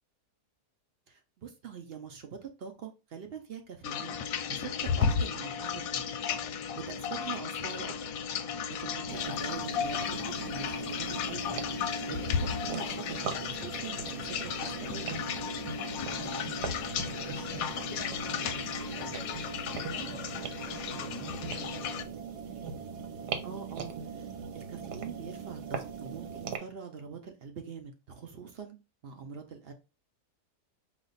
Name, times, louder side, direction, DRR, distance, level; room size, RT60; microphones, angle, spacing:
voice 1, 1.1-4.2 4.5-6.1 6.7-8.1 8.7-11.5 12.1-15.3 20.9-21.1 23.4-23.9 24.5-28.8 29.0-29.7, right 6 dB, 55° right, 5 dB, 0.7 m, -44 dB
sound 1, 3.8-22.0, left 7 dB, 70° left, 0.9 m, -34 dB
sound 2, 9.1-26.6, right 6 dB, 90° right, 1.3 m, -40 dB
voice 2, 16.1-22.1, equal, 35° left, -1 dB, 0.5 m, -48 dB
4.9 x 2.4 x 4.0 m, 0.28 s
omnidirectional pair, 1.7 m